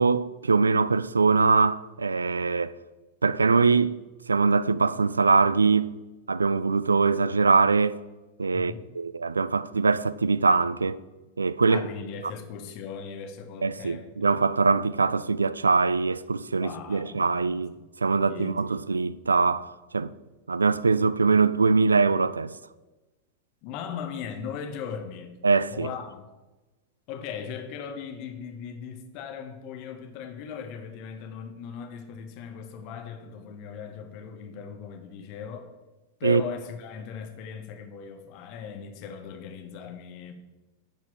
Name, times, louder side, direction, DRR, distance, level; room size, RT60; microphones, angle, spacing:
voice 1, 0.0-2.8 3.2-4.0 4.3-5.9 6.3-8.0 8.4-11.0 11.4-11.8 13.6-17.7 18.0-20.1 20.5-22.5 25.4-25.9 36.2-36.4, right 4 dB, 75° right, 0.3 m, -23 dB
voice 2, 8.5-8.9 11.7-14.4 16.6-17.9 18.1-18.9 23.6-25.4 25.7-26.3 27.1-35.7 36.2-40.3, left 7 dB, 45° left, 1.2 m, -38 dB
10.0 x 4.6 x 6.0 m
figure-of-eight pair, 90°, 0 cm